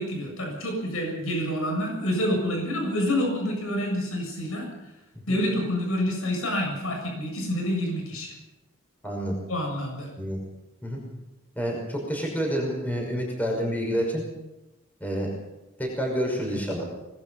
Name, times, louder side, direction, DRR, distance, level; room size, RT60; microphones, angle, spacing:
voice 1, 0.0-4.7 5.3-8.3 9.5-10.1, equal, 75° left, 1 dB, 7.3 m, -27 dB
voice 2, 9.0-9.4 10.2-10.4 10.8-11.0 11.6-14.2 15.0-15.3 15.8-16.9, equal, 10° left, 0 dB, 5.7 m, -28 dB
24.5 x 20.5 x 5.7 m, 1.0 s
head